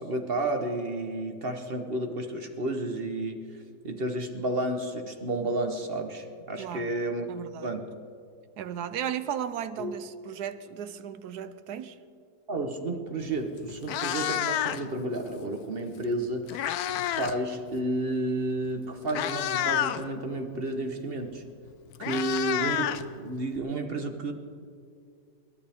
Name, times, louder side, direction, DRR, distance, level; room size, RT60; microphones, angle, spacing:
voice 1, 0.0-3.4 3.8-7.9 9.8-9.9 12.5-21.4 22.0-24.3, right 1 dB, 40° right, 1.1 m, -31 dB
voice 2, 6.6-6.9 7.3-7.7 8.6-11.9 22.1-22.2, right 9 dB, 75° right, 1.2 m, -35 dB
Meow, 13.2-13.4 13.7-15.0 16.1-17.4 17.7-18.0 18.7-18.8 19.1-20.0 21.3-21.4 21.7-23.6, left 11 dB, 70° left, 1.1 m, -29 dB
29.5 x 12.5 x 3.5 m
omnidirectional pair, 1.8 m